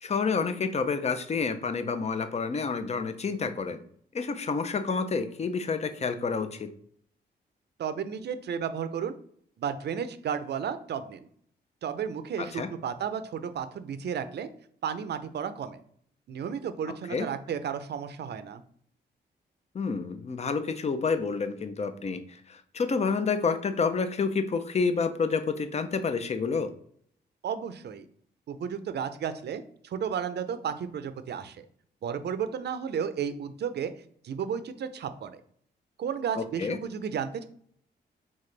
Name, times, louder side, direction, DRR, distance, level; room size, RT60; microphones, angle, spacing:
voice 1, 0.0-3.8 4.1-6.7 12.4-12.7 17.1-17.3 19.7-26.7 36.3-36.8, left 5 dB, 35° left, 10 dB, 0.6 m, -29 dB
voice 2, 7.8-9.1 9.6-11.3 11.8-14.5 14.8-15.8 16.3-18.6 27.4-28.1 28.5-31.6 32.0-33.9 34.2-35.4 36.0-37.4, right 7 dB, 65° right, 11 dB, 0.6 m, -33 dB
4.1 x 3.6 x 3.3 m, 0.63 s
cardioid pair, 85°, 18 cm